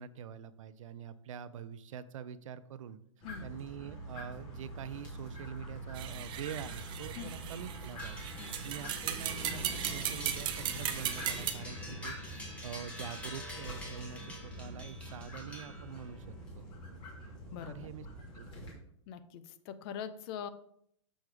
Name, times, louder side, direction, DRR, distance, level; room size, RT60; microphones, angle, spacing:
voice 1, 0.0-3.0 3.4-16.7 17.7-18.1 18.3-18.5, right 8 dB, 80° right, 14 dB, 0.6 m, -45 dB
sound 1, 3.2-18.7, right 1 dB, 30° left, 2.7 m, -45 dB
sound 2, 5.9-11.5, right 10 dB, 30° right, 0.7 m, -37 dB
sound 3, 8.0-16.2, left 1 dB, 10° left, 1.7 m, -48 dB
voice 2, 8.4-8.7 17.5-17.9 19.1-20.5, left 8 dB, 50° left, 12 dB, 0.7 m, -43 dB
6.4 x 4.7 x 4.9 m, 0.70 s
hypercardioid pair, 130°, 16 cm